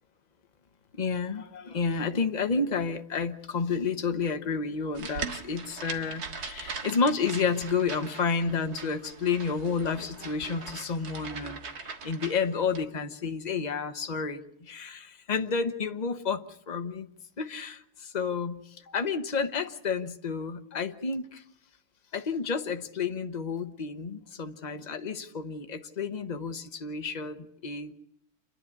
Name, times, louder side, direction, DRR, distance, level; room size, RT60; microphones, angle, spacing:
voice 1, 0.9-17.0 17.4-21.4 22.1-27.9, left 5 dB, 35° left, 8 dB, 0.6 m, -30 dB
sound 1, 4.9-12.8, right 5 dB, 50° right, 2.0 m, -41 dB
27.5 x 11.5 x 9.9 m, 0.74 s
omnidirectional pair, 2.4 m